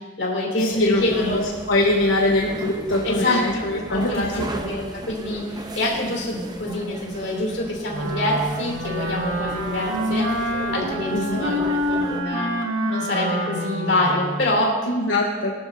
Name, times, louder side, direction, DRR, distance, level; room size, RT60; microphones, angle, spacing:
voice 1, 0.0-1.4 3.0-10.3 10.7-12.5 12.9-14.7, left 1 dB, 55° left, -2 dB, 2.9 m, -26 dB
voice 2, 0.6-4.5 11.1-11.5 14.9-15.5, left 1 dB, 80° left, -2 dB, 1.1 m, -23 dB
sound 1, 0.7-12.2, right 1 dB, 20° right, 0.7 m, -35 dB
Wind instrument woodwind instrument, 7.9-14.6, equal, 80° right, 1.6 m, -27 dB
20.0 x 11.5 x 2.7 m, 1.4 s
head